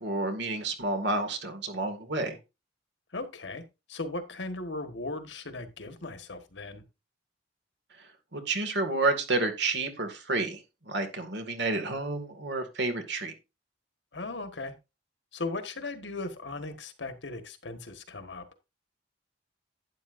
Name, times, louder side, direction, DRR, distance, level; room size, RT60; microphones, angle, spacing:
voice 1, 0.0-2.4 8.3-10.6 10.9-13.3, right 2 dB, 65° right, 7 dB, 2.2 m, -30 dB
voice 2, 3.1-3.6 3.9-6.8 14.1-14.7 15.3-18.4, left 2 dB, 75° left, 8 dB, 1.5 m, -37 dB
11.5 x 9.8 x 2.6 m, 0.26 s
head